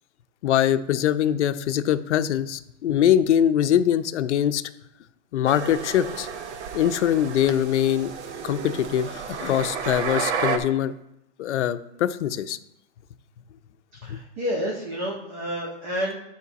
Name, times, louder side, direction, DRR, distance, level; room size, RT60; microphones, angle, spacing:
voice 1, 0.4-4.6 5.3-6.3 6.7-8.1 8.4-10.9 11.4-12.6 14.1-14.2, left 10 dB, 70° left, 11 dB, 0.6 m, -23 dB
sound 1, 5.5-10.6, right 6 dB, 65° right, 0.9 m, -31 dB
voice 2, 14.0-16.2, equal, 30° right, -4 dB, 1.5 m, -29 dB
11.0 x 4.5 x 4.1 m, 0.82 s
supercardioid pair, 180°, 37 cm